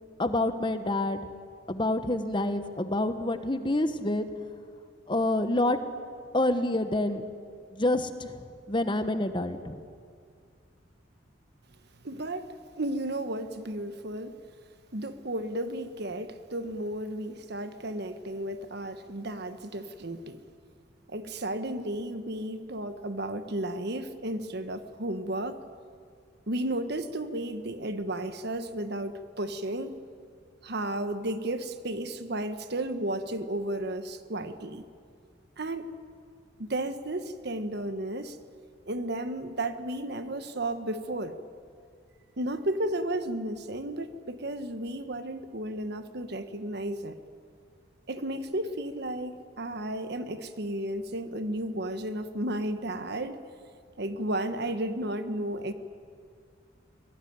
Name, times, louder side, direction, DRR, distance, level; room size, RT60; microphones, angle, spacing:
voice 1, 0.2-1.2 1.7-4.3 5.1-5.8 6.3-7.2 7.7-9.8, left 1 dB, 25° left, 9 dB, 1.2 m, -27 dB
voice 2, 12.0-14.4 14.9-20.4 21.1-25.7 26.5-30.0 30.6-34.8 35.6-35.9 36.6-38.4 38.9-41.4 42.4-47.2 48.1-53.4 54.0-55.7, right 1 dB, 55° right, 10 dB, 1.3 m, -33 dB
24.5 x 18.5 x 9.6 m, 2.1 s
head